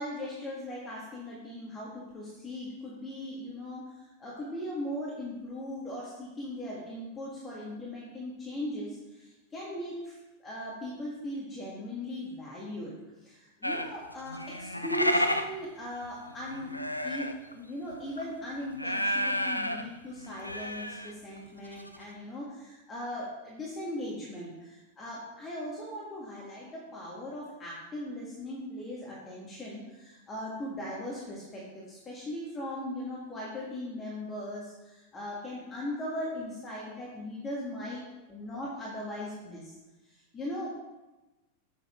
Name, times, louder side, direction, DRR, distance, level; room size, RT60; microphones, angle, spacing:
voice 1, 0.0-12.9 13.2-39.8 40.1-40.8, left 1 dB, 20° left, -5 dB, 1.9 m, -39 dB
sound 1, 13.6-17.5 17.9-18.2 18.7-19.9 20.2-21.1 21.4-21.5 21.7-22.0, equal, 90° left, 0.5 m, -31 dB
7.3 x 6.6 x 4.4 m, 1.1 s
figure-of-eight pair, 90°, 0 cm